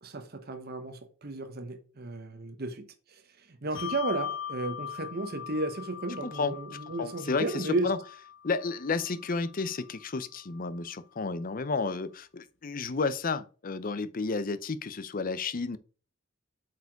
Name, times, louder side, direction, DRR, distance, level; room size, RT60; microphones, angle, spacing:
voice 1, 0.0-3.2 3.5-7.9, right 2 dB, 50° right, 1.1 m, -34 dB
Bell, 3.7-10.6, left 9 dB, 65° left, 1.0 m, -41 dB
voice 2, 6.2-6.5 7.0-8.0 8.4-15.8, left 4 dB, 45° left, 0.6 m, -32 dB
8.0 x 4.8 x 4.7 m
head